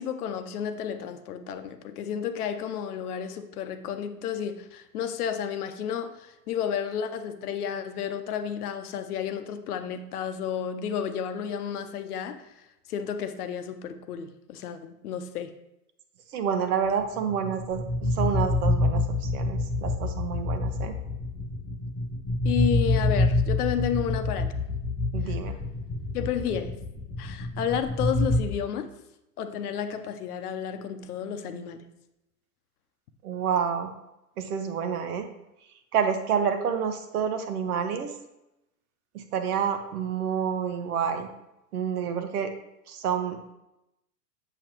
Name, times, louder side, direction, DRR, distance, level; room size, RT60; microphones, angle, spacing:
voice 1, 0.0-12.5 12.9-15.5 22.4-24.5 25.3-25.4 26.1-26.8 27.2-28.9 29.4-31.9, left 8 dB, 65° left, 9 dB, 0.9 m, -31 dB
voice 2, 16.3-20.9 25.1-25.5 33.2-33.9 34.4-35.3 35.9-38.1 39.1-41.3 41.7-42.5 42.9-43.4, right 7 dB, 65° right, 7 dB, 1.1 m, -28 dB
sound 1, 17.3-28.4, left 2 dB, 10° left, 0.5 m, -27 dB
7.1 x 7.0 x 3.0 m, 0.90 s
hypercardioid pair, 125°, 48 cm